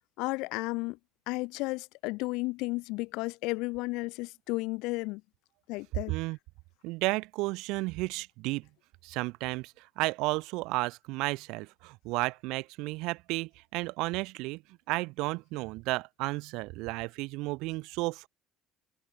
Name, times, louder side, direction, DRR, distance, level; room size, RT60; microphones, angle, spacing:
voice 1, 0.2-1.0 1.3-5.2 5.7-6.1, left 24 dB, 75° left, 1.0 m, -33 dB
voice 2, 6.1-6.4 6.8-8.6 9.0-14.6 14.9-18.3, right 23 dB, 75° right, 1.6 m, -33 dB
cardioid pair, 150°, 0 cm